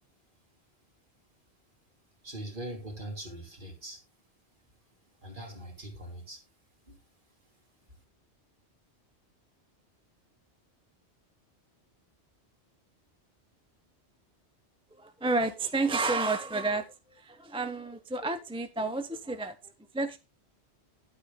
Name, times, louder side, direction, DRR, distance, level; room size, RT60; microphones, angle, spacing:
voice 1, 2.2-4.0 5.2-6.4 6.9-7.0, right 1 dB, 45° right, 3.2 m, -41 dB
voice 2, 15.0-16.9 17.1-20.2, right 3 dB, 5° right, 0.7 m, -31 dB
10.5 x 7.9 x 3.8 m
omnidirectional pair, 1.1 m